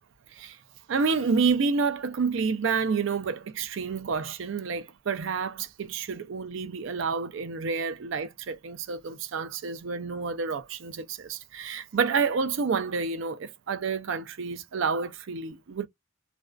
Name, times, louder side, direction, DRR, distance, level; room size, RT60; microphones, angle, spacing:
voice 1, 0.9-15.9, right 5 dB, 65° right, 0.4 m, -29 dB
2.5 x 2.1 x 2.3 m
head